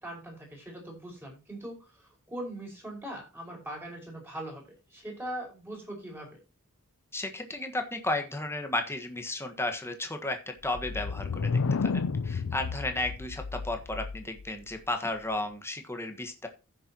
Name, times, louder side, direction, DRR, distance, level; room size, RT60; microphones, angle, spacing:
voice 1, 0.0-6.3, right 1 dB, 10° right, -1 dB, 5.0 m, -41 dB
voice 2, 7.1-16.5, left 2 dB, 10° left, 5 dB, 1.4 m, -34 dB
sound 1, 10.6-14.4, left 4 dB, 70° left, 0.5 m, -31 dB
15.5 x 6.7 x 2.9 m, 0.30 s
head